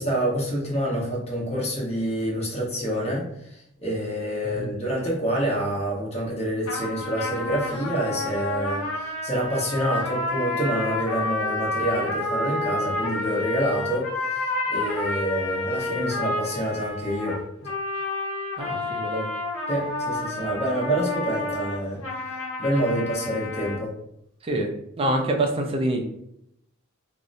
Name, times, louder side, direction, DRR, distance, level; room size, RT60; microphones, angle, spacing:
voice 1, 0.0-17.4 19.7-23.9, equal, 30° left, -4 dB, 0.9 m, -27 dB
sound 1, 6.7-23.8, left 2 dB, 80° left, 0.7 m, -30 dB
voice 2, 18.6-19.3 24.4-24.7 25.0-26.0, right 1 dB, 25° right, 2 dB, 0.4 m, -26 dB
2.7 x 2.0 x 2.5 m, 0.76 s
head